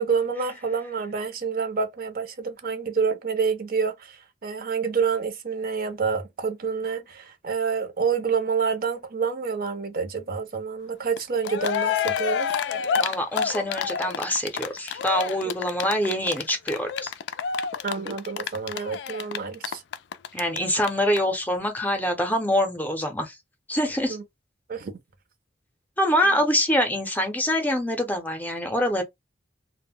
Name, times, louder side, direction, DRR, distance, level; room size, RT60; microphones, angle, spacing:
voice 1, 0.0-12.5 17.8-19.8 24.1-24.2 24.7-24.9, right 5 dB, 55° right, 0.5 m, -28 dB
Cheering, 11.2-11.3 11.4-20.6 20.8-20.9 21.2-21.3, left 7 dB, 70° left, 0.3 m, -28 dB
voice 2, 13.0-17.1 20.3-23.4 23.7-24.2 26.0-29.0, equal, 10° left, 0.6 m, -25 dB
2.1 x 2.0 x 3.5 m
head